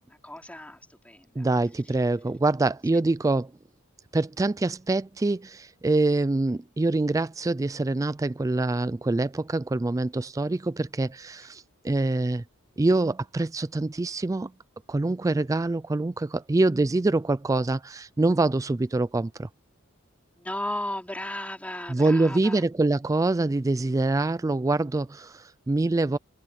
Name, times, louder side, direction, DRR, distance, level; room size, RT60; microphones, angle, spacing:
voice 1, 0.1-1.5 20.4-22.6, left 1 dB, 5° left, 3.6 m, -35 dB
voice 2, 1.4-3.5 4.1-12.4 12.8-14.5 14.9-19.5 21.9-26.2, right 2 dB, 15° right, 0.3 m, -25 dB
head